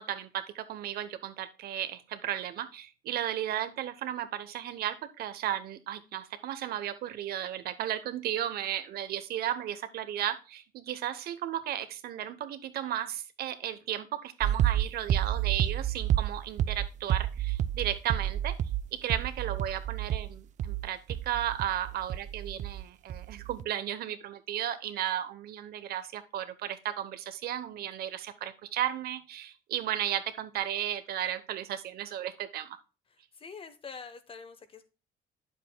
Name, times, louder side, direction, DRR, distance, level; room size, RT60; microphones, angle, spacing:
voice 1, 0.0-18.5 18.9-32.8, right 11 dB, 65° right, 11 dB, 0.9 m, -34 dB
sound 1, 14.4-22.8 23.1-23.6, right 11 dB, 45° right, 0.4 m, -30 dB
voice 2, 33.1-34.9, left 5 dB, 35° left, 10 dB, 1.0 m, -46 dB
9.0 x 7.3 x 2.2 m, 0.32 s
cardioid pair, 110°, 17 cm